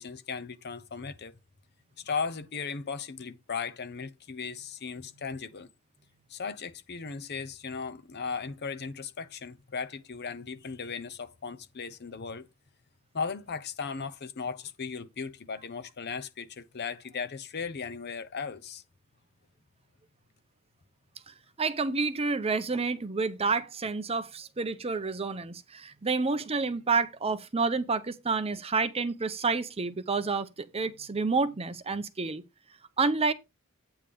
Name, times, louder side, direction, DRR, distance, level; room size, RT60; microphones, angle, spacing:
voice 1, 0.0-1.4 2.0-5.7 6.3-12.5 13.1-18.8, left 5 dB, 50° left, 0.8 m, -37 dB
voice 2, 21.3-32.4 33.0-33.3, right 4 dB, 30° right, 0.7 m, -29 dB
9.0 x 3.5 x 6.8 m
head